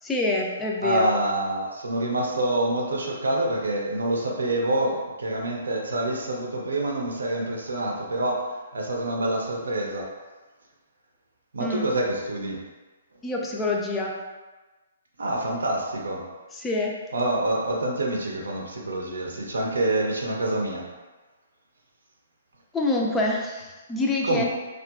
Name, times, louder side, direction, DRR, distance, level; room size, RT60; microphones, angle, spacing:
voice 1, 0.0-1.1 11.6-11.9 13.2-14.1 16.5-16.9 22.7-24.4, left 2 dB, 10° left, -1 dB, 0.4 m, -26 dB
voice 2, 0.8-10.1 11.5-12.6 15.2-16.2 17.1-20.9 24.2-24.4, right 1 dB, 80° right, -1 dB, 0.6 m, -26 dB
2.7 x 2.4 x 2.3 m, 1.2 s
hypercardioid pair, 135°, 0 cm